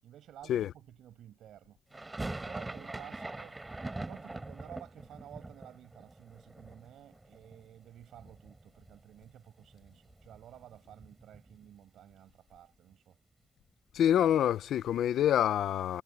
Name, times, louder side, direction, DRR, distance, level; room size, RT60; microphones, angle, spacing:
voice 1, 0.0-1.8 2.4-3.6 4.0-13.2, right 11 dB, 75° right, 6.3 m, -53 dB
sound 1, 1.9-7.9 8.1-9.0 9.2-9.3 9.6-11.8, right 2 dB, 15° right, 5.6 m, -43 dB
voice 2, 13.9-16.0, left 10 dB, 70° left, 0.8 m, -26 dB
cardioid pair, 90°, 0 cm